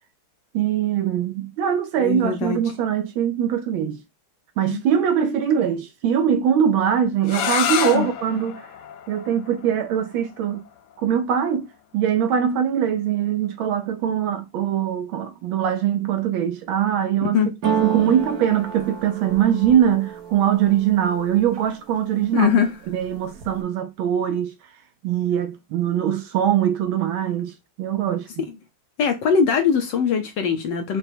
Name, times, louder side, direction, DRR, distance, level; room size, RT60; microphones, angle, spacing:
voice 1, 0.5-4.0 4.6-8.7 9.1-10.6 11.0-11.7 11.9-17.4 17.8-22.5 22.9-24.5 25.0-28.3, right 9 dB, 75° right, 1.2 m, -22 dB
voice 2, 2.0-2.6 4.7-4.8 7.9-8.1 17.3-17.5 22.3-22.7 29.0-31.0, left 6 dB, 65° left, 1.2 m, -21 dB
sound 1, 7.2-13.0, left 9 dB, 85° left, 0.9 m, -30 dB
sound 2, 17.6-21.5 22.0-22.5 22.8-23.6, right 7 dB, 55° right, 1.1 m, -29 dB
5.0 x 2.2 x 4.3 m
omnidirectional pair, 2.4 m